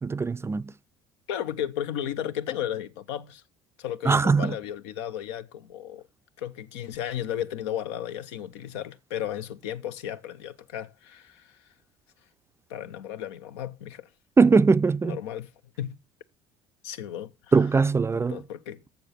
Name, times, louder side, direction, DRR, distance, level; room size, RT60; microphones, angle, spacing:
voice 1, 0.0-0.7 4.1-4.5 14.4-15.2 17.5-18.4, right 4 dB, 20° right, 0.4 m, -21 dB
voice 2, 1.3-3.4 3.8-6.0 6.4-11.6 12.7-14.1 15.0-15.5 15.8-16.0 16.8-17.3 18.1-18.8, left 10 dB, 75° left, 0.7 m, -34 dB
7.0 x 6.5 x 7.4 m
hypercardioid pair, 70°, 14 cm